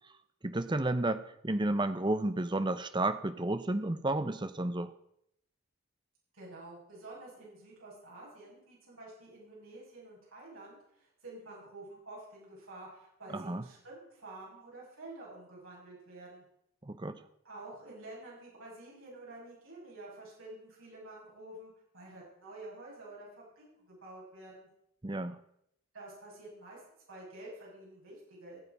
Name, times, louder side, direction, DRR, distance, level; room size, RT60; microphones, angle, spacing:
voice 1, 0.4-4.9 13.3-13.7 16.8-17.2 25.0-25.4, right 2 dB, 20° right, 12 dB, 0.6 m, -32 dB
voice 2, 6.3-16.4 17.4-24.7 25.9-26.8 27.1-28.6, right 2 dB, 70° right, -5 dB, 6.5 m, -49 dB
17.5 x 7.6 x 5.4 m, 0.76 s
head